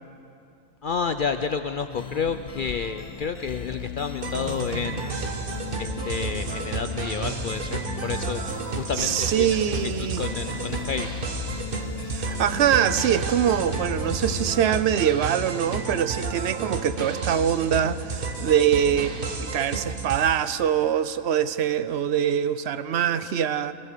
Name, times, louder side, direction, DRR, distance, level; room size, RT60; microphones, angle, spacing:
voice 1, 0.8-5.4 5.8-8.4 8.7-11.1, left 6 dB, 75° left, 9 dB, 0.4 m, -30 dB
sound 1, 1.9-14.6, left 5 dB, 30° left, 0.9 m, -37 dB
sound 2, 4.2-20.5, right 3 dB, 40° right, 1.3 m, -32 dB
voice 2, 9.0-10.2 12.1-23.7, right 9 dB, 60° right, 13 dB, 0.7 m, -24 dB
24.0 x 16.5 x 6.7 m, 2.6 s
omnidirectional pair, 1.5 m